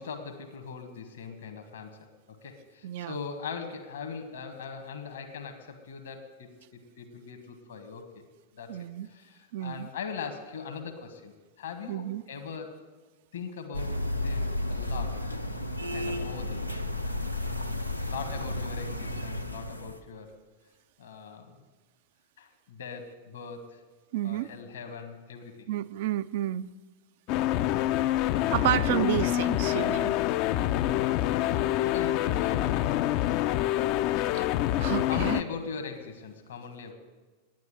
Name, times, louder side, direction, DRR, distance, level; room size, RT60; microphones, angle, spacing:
voice 1, 0.0-8.3 8.5-12.8 13.3-15.2 15.9-16.8 18.1-20.4 21.0-21.6 22.4-23.8 24.2-25.7 31.4-33.2 35.0-36.9, left 6 dB, 65° left, 1.4 m, -41 dB
voice 2, 2.8-3.2 8.7-9.1 9.5-9.9 11.9-12.2 24.1-24.5 25.7-26.7 28.5-30.2 34.3-34.5 34.8-35.4, right 13 dB, 50° right, 0.3 m, -30 dB
sound 1, 13.7-20.0, left 1 dB, 90° left, 0.6 m, -32 dB
sound 2, 27.3-35.4, left 13 dB, 45° left, 0.4 m, -26 dB
9.7 x 9.4 x 9.3 m
figure-of-eight pair, 90°, 0 cm